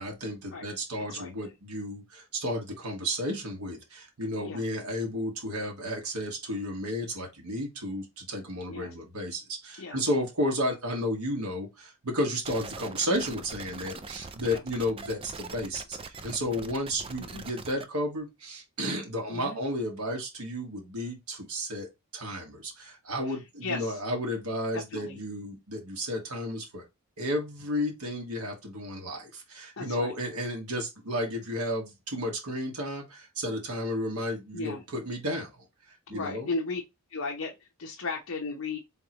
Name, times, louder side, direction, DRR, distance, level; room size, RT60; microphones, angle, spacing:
voice 1, 0.0-21.9 22.1-26.8 27.2-35.7 36.1-36.5, equal, 90° right, 1.4 m, -32 dB
voice 2, 1.0-1.3 4.4-4.6 8.7-8.9 9.8-10.1 14.4-14.6 17.2-17.5 19.3-19.6 23.2-24.0 24.7-25.2 29.8-30.1 34.5-34.8 36.1-36.8 37.1-38.8, left 3 dB, 65° left, 0.9 m, -36 dB
sound 1, 12.4-17.8, right 4 dB, 25° right, 0.4 m, -42 dB
3.8 x 3.5 x 2.9 m
head